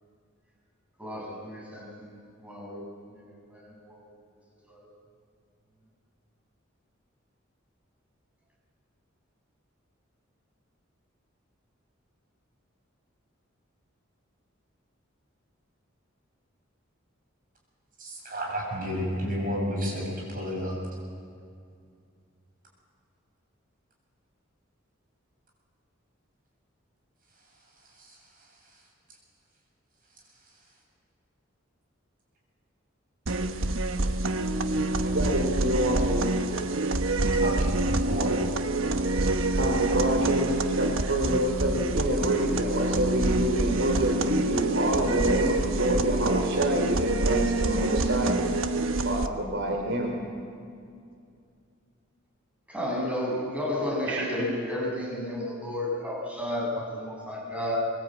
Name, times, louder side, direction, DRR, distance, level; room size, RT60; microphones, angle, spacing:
voice 1, 1.0-4.0 4.7-4.9 52.7-57.8, left 1 dB, 5° right, -4 dB, 6.4 m, -33 dB
voice 2, 18.0-20.8 28.0-28.2 37.4-38.4, equal, 45° right, -1 dB, 7.9 m, -31 dB
sound 1, 33.3-49.3, right 2 dB, 85° right, 1.2 m, -27 dB
voice 3, 35.0-36.3 39.5-48.4 49.0-50.1 54.1-54.2, right 1 dB, 70° right, 1 dB, 4.0 m, -27 dB
24.0 x 22.0 x 8.7 m, 2.3 s
head